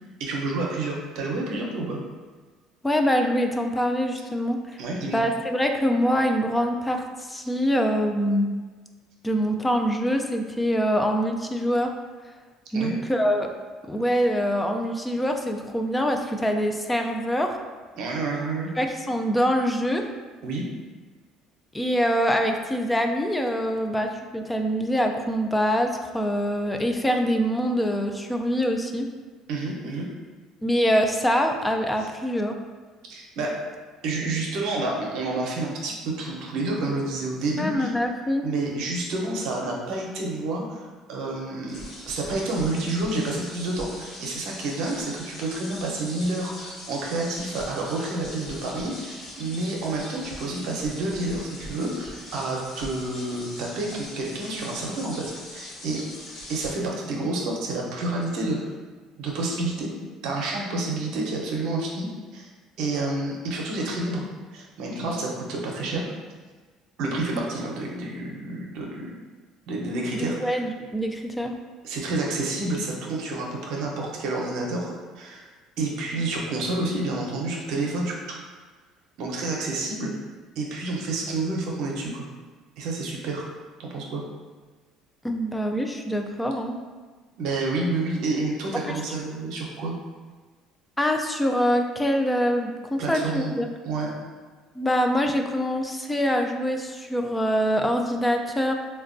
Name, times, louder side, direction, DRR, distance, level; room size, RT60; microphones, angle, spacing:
voice 1, 0.2-2.0 4.2-4.3 4.8-5.2 12.7-12.9 18.0-18.7 20.4-20.6 29.5-30.1 33.1-33.6 34.0-37.9 38.4-56.0 56.5-58.7 59.2-59.9 60.2-62.5 62.8-64.3 64.5-66.0 67.0-69.1 69.7-70.6 71.8-75.5 75.8-78.2 79.2-80.1 80.6-82.3 82.8-83.5 83.8-84.2 87.4-89.9 93.0-93.5 93.8-94.1, right 2 dB, 70° right, -1 dB, 0.6 m, -29 dB
voice 2, 2.8-4.8 5.1-8.5 9.2-11.9 12.7-13.5 13.9-17.6 18.8-20.0 21.7-29.1 30.6-32.5 37.6-38.5 70.1-71.5 85.2-86.8 88.9-89.0 91.0-93.7 94.8-98.7, equal, 10° left, 4 dB, 0.3 m, -24 dB
sound 1, 41.7-56.7, left 1 dB, 55° left, 0.9 m, -41 dB
3.9 x 2.2 x 2.5 m, 1.4 s
cardioid pair, 110°, 0 cm